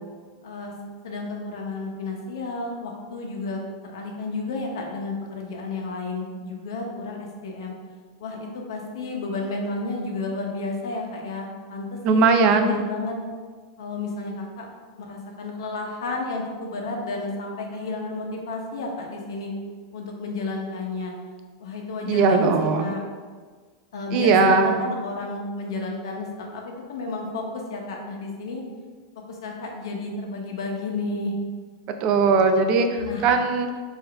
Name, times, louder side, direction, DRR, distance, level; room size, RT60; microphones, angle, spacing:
voice 1, 1.0-3.7 3.9-7.7 8.2-13.1 13.8-14.7 15.0-19.5 19.9-21.1 21.6-22.5 22.8-23.0 23.9-28.6 29.3-31.3 33.0-33.3, left 3 dB, 85° left, 1 dB, 0.8 m, -31 dB
voice 2, 12.0-12.7 22.1-22.9 24.1-24.8 32.0-33.7, right 4 dB, 40° right, 6 dB, 0.4 m, -19 dB
3.9 x 2.7 x 4.3 m, 1.5 s
supercardioid pair, 150°, 2 cm